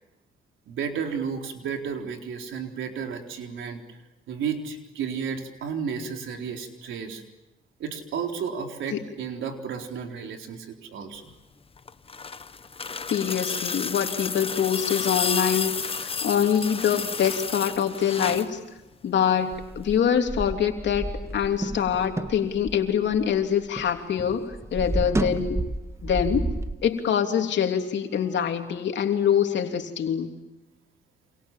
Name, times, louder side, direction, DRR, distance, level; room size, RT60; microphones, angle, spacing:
voice 1, 0.7-3.8 4.3-7.2 7.8-11.2, right 6 dB, 80° right, 4 dB, 4.1 m, -32 dB
sound 1, 11.8-18.5 19.8-19.9, left 5 dB, 30° left, 1.0 m, -31 dB
voice 2, 13.1-18.6 19.0-21.1 21.3-25.6 26.0-26.5 26.8-30.3, left 8 dB, 65° left, 5 dB, 3.4 m, -25 dB
sound 2, 19.5-23.9 24.2-26.7, right 2 dB, 15° right, 1.5 m, -31 dB
29.0 x 27.0 x 7.6 m, 1.0 s
cardioid pair, 90°, 20 cm